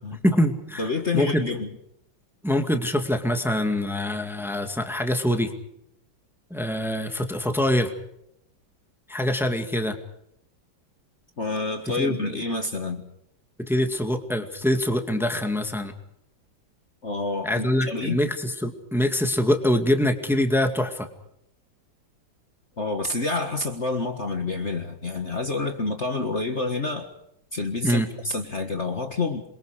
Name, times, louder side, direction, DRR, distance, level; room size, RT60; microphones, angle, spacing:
voice 1, 0.2-0.9 1.1-1.4 2.4-5.5 6.5-7.9 9.1-10.0 11.9-12.2 13.6-15.9 17.4-21.1 27.8-28.1, left 1 dB, ahead, 6 dB, 2.1 m, -24 dB
voice 2, 0.8-1.7 11.4-13.1 17.0-18.2 22.8-27.1 27.5-29.4, left 3 dB, 40° left, 5 dB, 1.9 m, -28 dB
28.0 x 23.5 x 5.1 m, 0.78 s
omnidirectional pair, 2.1 m